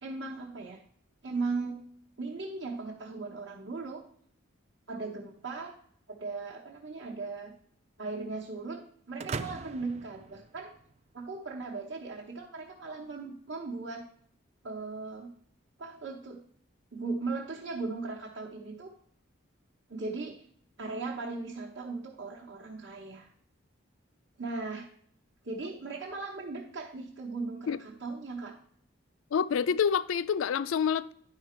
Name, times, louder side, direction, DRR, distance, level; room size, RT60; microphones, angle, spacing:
voice 1, 0.0-0.8 1.2-1.8 2.2-4.0 4.9-5.7 6.1-7.5 8.0-8.8 9.1-10.7 11.1-14.1 14.6-15.3 15.8-16.4 16.9-18.9 19.9-20.4 20.8-23.3 24.4-24.9 25.4-28.6, right 3 dB, 65° right, -3 dB, 1.0 m, -38 dB
sound 1, 9.2-11.1, right 4 dB, 35° right, 0.3 m, -40 dB
voice 2, 29.3-31.1, left 7 dB, 85° left, 16 dB, 0.4 m, -27 dB
10.5 x 5.0 x 4.4 m, 0.64 s
head